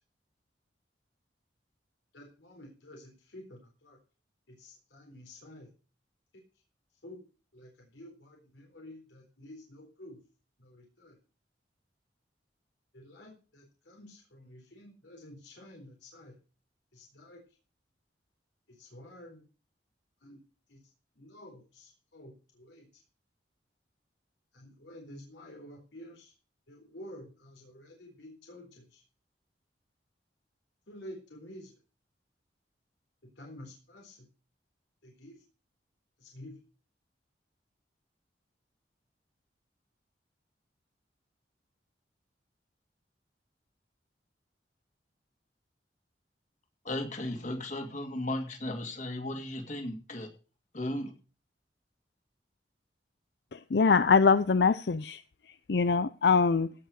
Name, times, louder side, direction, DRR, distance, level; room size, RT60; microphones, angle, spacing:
voice 1, 2.1-4.0 4.5-5.7 6.3-6.4 7.0-7.2 7.5-10.2 10.6-11.2 12.9-16.4 16.9-17.4 18.7-19.5 20.2-20.4 20.7-20.8 21.2-23.0 24.5-26.3 26.7-29.0 30.9-31.7 33.4-34.3 35.0-35.4 36.2-36.6, left 1 dB, 90° left, 4.0 m, -50 dB
voice 2, 46.8-50.3 50.7-51.1, left 1 dB, 45° left, 2.4 m, -35 dB
voice 3, 53.5-55.2 55.7-56.7, left 5 dB, 65° left, 0.5 m, -23 dB
16.5 x 5.7 x 6.4 m
head